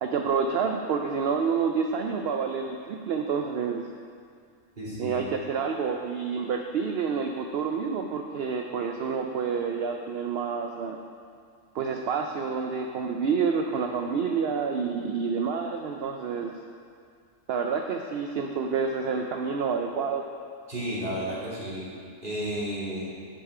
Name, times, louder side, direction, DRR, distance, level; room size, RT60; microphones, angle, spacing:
voice 1, 0.0-3.9 5.0-11.0 11.7-16.6 17.5-20.2, right 5 dB, 65° right, 3 dB, 0.6 m, -28 dB
voice 2, 4.8-5.2 20.7-21.9 22.2-23.2, equal, 35° right, -9 dB, 2.6 m, -32 dB
10.0 x 5.5 x 4.8 m, 2.2 s
omnidirectional pair, 1.4 m